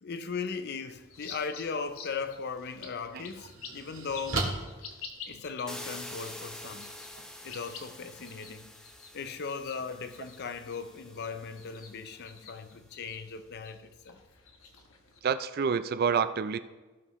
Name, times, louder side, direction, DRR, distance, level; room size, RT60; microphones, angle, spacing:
voice 1, 0.0-4.5 5.3-6.9 7.4-8.7 9.1-14.2, left 5 dB, 50° left, 0.5 m, -38 dB
sound 1, 0.9-15.2, left 5 dB, 80° left, 1.1 m, -49 dB
sound 2, 2.1-2.2 2.8-5.8, right 3 dB, 75° right, 1.7 m, -37 dB
sound 3, 5.7-12.5, left 1 dB, 5° left, 0.6 m, -47 dB
voice 2, 15.2-16.6, right 6 dB, 45° right, 0.4 m, -28 dB
16.0 x 5.9 x 3.1 m
head